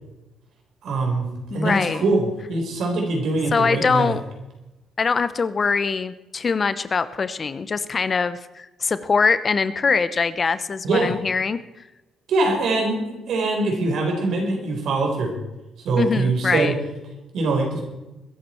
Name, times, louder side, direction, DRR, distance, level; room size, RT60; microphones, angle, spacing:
voice 1, 0.8-4.1 10.8-11.1 12.3-15.4 15.8-16.7 17.3-17.8, right 3 dB, 70° right, 2 dB, 4.3 m, -23 dB
voice 2, 1.5-2.0 3.5-4.2 5.0-11.6 16.0-16.7, left 5 dB, 40° left, 14 dB, 0.9 m, -23 dB
21.5 x 11.0 x 4.5 m, 1.0 s
supercardioid pair, 60°, 0 cm